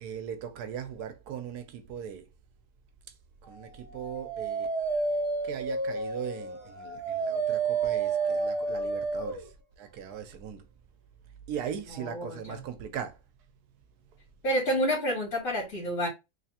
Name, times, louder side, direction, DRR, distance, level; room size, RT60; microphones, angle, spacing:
voice 1, 0.0-2.2 3.5-4.7 5.4-9.4 9.8-10.6 11.5-13.2, right 8 dB, 80° right, 1.2 m, -39 dB
Dog, 3.8-9.4, right 4 dB, 20° left, 1.3 m, -30 dB
voice 2, 12.0-12.6 14.4-16.1, equal, 55° left, 2.4 m, -29 dB
3.5 x 3.2 x 2.8 m
omnidirectional pair, 1.7 m